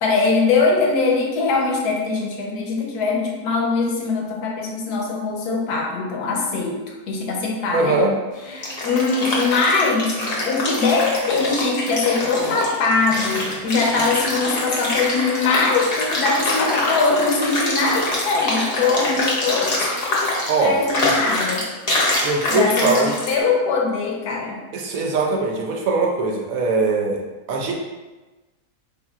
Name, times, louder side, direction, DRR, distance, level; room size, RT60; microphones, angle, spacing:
voice 1, 0.0-8.0 8.5-10.2 10.4-21.7 22.5-24.6, left 4 dB, 80° left, 0 dB, 1.2 m, -22 dB
voice 2, 7.7-8.1 20.5-21.1 22.2-23.1 24.7-27.2 27.5-27.7, right 3 dB, 70° right, 1 dB, 0.9 m, -21 dB
sound 1, 8.3-23.4, left 2 dB, 45° left, 0.9 m, -24 dB
4.4 x 3.5 x 2.4 m, 1.2 s
omnidirectional pair, 1.6 m